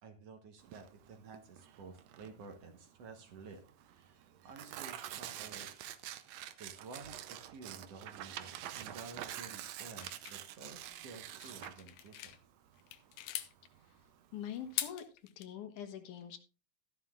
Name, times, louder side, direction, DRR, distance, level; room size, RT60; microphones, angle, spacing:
voice 1, 0.0-3.6 3.9-5.7 6.6-12.4, right 4 dB, 60° right, 5 dB, 1.9 m, -52 dB
Tearing, 0.6-14.9, right 12 dB, 85° right, 1.5 m, -47 dB
sound 1, 10.0-12.4 12.8-13.5 14.6-15.5, left 13 dB, 90° left, 2.5 m, -42 dB
voice 2, 14.3-15.1 15.4-16.4, left 9 dB, 70° left, 8 dB, 2.6 m, -44 dB
14.0 x 11.0 x 2.4 m, 0.34 s
omnidirectional pair, 3.9 m